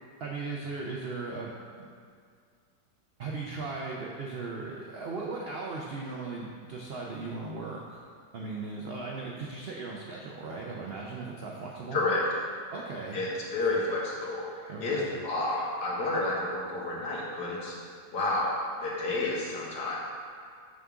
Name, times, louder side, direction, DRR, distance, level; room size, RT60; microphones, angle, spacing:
voice 1, 0.2-1.5 1.8-1.9 3.2-8.0 8.3-12.0 12.7-13.2 14.7-15.1, right 3 dB, 85° right, -2 dB, 0.5 m, -37 dB
voice 2, 13.1-17.8 18.1-18.5 18.8-20.0, left 2 dB, 75° left, -5 dB, 1.9 m, -30 dB
6.3 x 3.6 x 6.0 m, 2.2 s
omnidirectional pair, 1.8 m